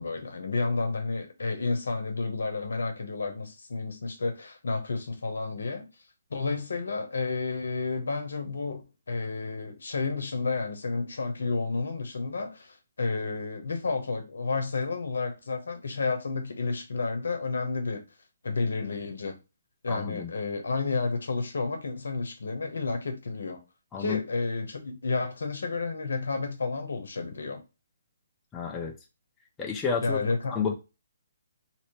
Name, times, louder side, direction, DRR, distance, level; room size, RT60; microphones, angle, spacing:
voice 1, 0.0-5.8 6.3-18.0 18.4-19.4 19.8-23.6 24.0-27.6 30.0-30.6, left 3 dB, 75° left, 1.0 m, -31 dB
voice 2, 19.9-20.3 23.9-24.2 28.5-28.9 29.6-30.2 30.5-30.7, left 6 dB, 15° left, 0.7 m, -30 dB
2.9 x 2.7 x 3.1 m
hypercardioid pair, 145°, 0 cm